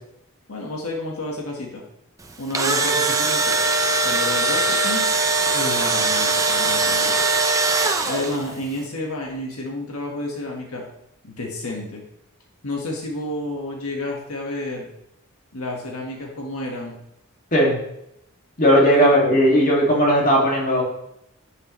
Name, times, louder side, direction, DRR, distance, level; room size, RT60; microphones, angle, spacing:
voice 1, 0.5-1.8 2.4-3.7 4.0-7.1 8.0-10.8 11.2-12.0 12.6-14.9 15.5-16.9 19.0-19.2, left 1 dB, 80° left, 0 dB, 1.6 m, -30 dB
Engine / Drill, 2.3-8.5, right 3 dB, 15° right, 0.7 m, -21 dB
voice 2, 18.6-20.8, equal, 40° left, -2 dB, 2.3 m, -16 dB
11.5 x 6.7 x 3.1 m, 0.83 s
head